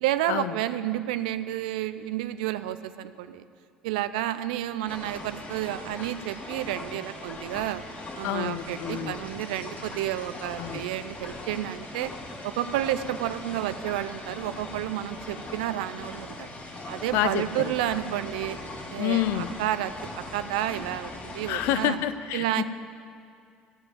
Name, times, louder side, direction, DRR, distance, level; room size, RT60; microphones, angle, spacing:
voice 1, 0.0-3.5 3.8-7.8 8.2-12.1 12.4-16.5 16.9-18.6 18.9-19.9 20.3-22.0 22.3-22.6, right 13 dB, 80° right, 12 dB, 0.4 m, -30 dB
sound 1, 4.9-21.9, left 2 dB, 40° left, 2.2 m, -40 dB
voice 2, 8.2-9.2 10.6-10.8 17.1-17.4 19.0-19.5 21.5-22.6, left 12 dB, 70° left, 12 dB, 0.5 m, -28 dB
15.5 x 5.2 x 7.5 m, 2.3 s
hypercardioid pair, 65°, 4 cm